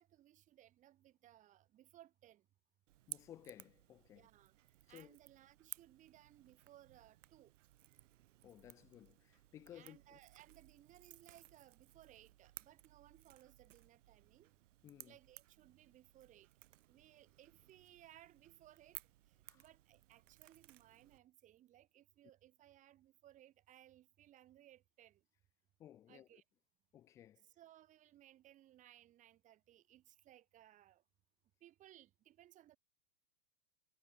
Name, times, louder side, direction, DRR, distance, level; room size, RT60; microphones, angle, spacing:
voice 1, 0.0-2.5 4.1-4.6 4.9-7.5 9.7-14.5 15.1-16.5 16.9-19.0 19.3-25.2 26.1-26.4 27.4-31.0 31.6-32.8, right 13 dB, 20° right, 1.9 m, -63 dB
Crackle / Crack, 2.9-21.2, right 14 dB, 70° right, 1.3 m, -59 dB
voice 2, 3.1-4.3 4.9-5.2 8.4-10.2 14.8-15.2 19.5-19.6 25.8-26.4 26.9-27.5, left 11 dB, 10° left, 0.4 m, -58 dB
supercardioid pair, 165°, 38 cm